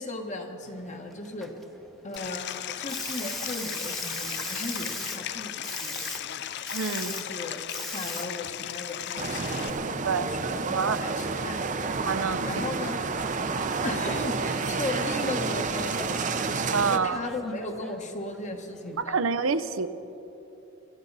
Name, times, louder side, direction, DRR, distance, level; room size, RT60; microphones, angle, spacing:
voice 1, 0.0-1.5 2.0-6.4 7.1-7.6 7.9-11.6 12.4-13.0 13.8-16.4 16.9-19.3, left 2 dB, 35° left, 4 dB, 1.4 m, -36 dB
Hiss, 0.6-19.0, equal, ahead, 0.9 m, -42 dB
Stream, 2.2-9.7, left 11 dB, 55° left, 0.4 m, -36 dB
voice 2, 6.7-7.1 10.0-10.3 10.7-11.0 12.0-12.5 16.7-17.2 19.0-19.9, right 5 dB, 80° right, 13 dB, 0.7 m, -27 dB
sound 1, 9.2-17.0, right 4 dB, 40° right, 0.7 m, -30 dB
24.5 x 13.5 x 4.1 m, 3.0 s
head